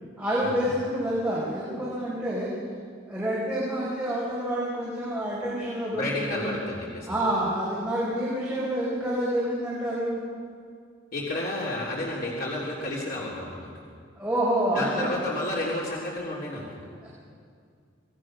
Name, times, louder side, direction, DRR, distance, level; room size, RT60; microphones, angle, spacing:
voice 1, 0.2-2.5 3.0-6.5 7.1-10.2 14.2-15.1 17.0-17.1, right 1 dB, 5° right, -8 dB, 4.9 m, -28 dB
voice 2, 5.9-7.1 11.1-13.7 14.7-16.8, left 1 dB, 50° left, -5 dB, 3.4 m, -31 dB
26.0 x 19.5 x 6.3 m, 2.2 s
head